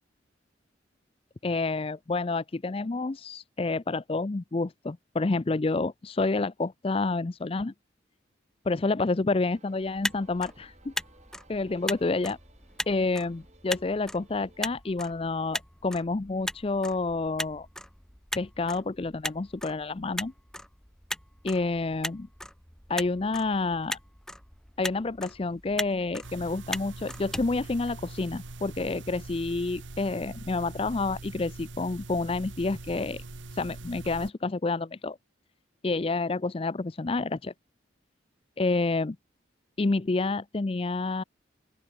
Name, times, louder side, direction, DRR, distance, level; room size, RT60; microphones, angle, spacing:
voice 1, 1.4-7.7 8.6-10.9 11.5-12.4 12.9-17.7 18.4-20.3 21.4-22.3 22.9-24.0 24.8-33.2 33.5-35.2 35.8-37.5 38.6-39.2 39.8-41.2, left 3 dB, 30° left, 0.5 m, -29 dB
sound 1, 9.5-14.7, right 2 dB, 35° right, 3.8 m, -60 dB
Motor vehicle (road), 9.8-28.4, left 1 dB, 5° left, 1.2 m, -39 dB
sound 2, 26.2-34.3, right 2 dB, 80° right, 1.5 m, -43 dB
open air
head